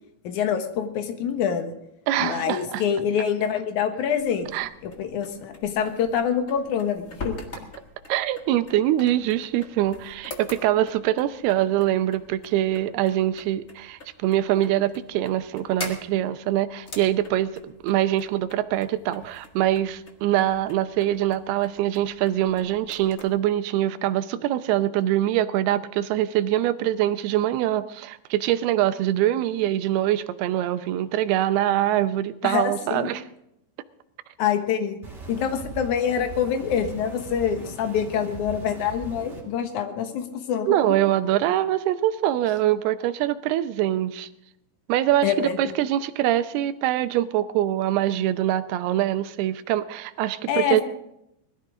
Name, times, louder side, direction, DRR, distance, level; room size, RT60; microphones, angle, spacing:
voice 1, 0.2-1.7 2.2-4.5 4.8-7.4 32.4-33.1 34.4-35.0 35.3-41.0 45.2-45.7 50.5-50.8, left 8 dB, 60° left, 6 dB, 2.4 m, -26 dB
voice 2, 2.1-2.8 4.5-4.7 8.1-33.2 40.7-44.3 44.9-50.8, right 13 dB, 80° right, 11 dB, 2.6 m, -24 dB
sound 1, 4.2-23.3, left 2 dB, 45° left, 1.0 m, -44 dB
sound 2, 35.0-39.4, right 3 dB, 20° right, 3.2 m, -39 dB
21.0 x 13.5 x 3.8 m, 0.81 s
omnidirectional pair, 4.6 m